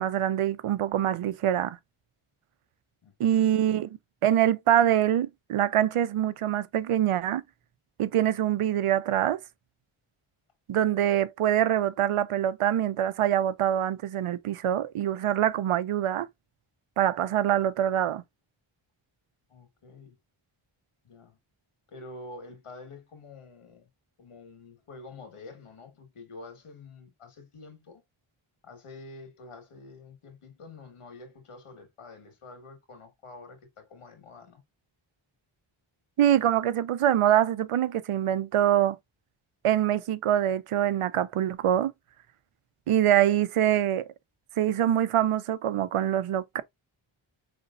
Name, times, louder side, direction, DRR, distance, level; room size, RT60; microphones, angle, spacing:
voice 1, 0.0-1.8 3.2-7.4 8.0-9.4 10.7-16.3 17.0-18.2 36.2-39.0 39.6-41.9 42.9-44.1 44.6-46.6, right 11 dB, 85° right, 0.7 m, -24 dB
voice 2, 3.0-3.5 19.5-20.2 21.0-21.4 21.9-23.9 24.2-28.0 28.6-34.6, left 3 dB, 85° left, 1.8 m, -47 dB
5.2 x 3.4 x 2.5 m
cardioid pair, 65°, 50 cm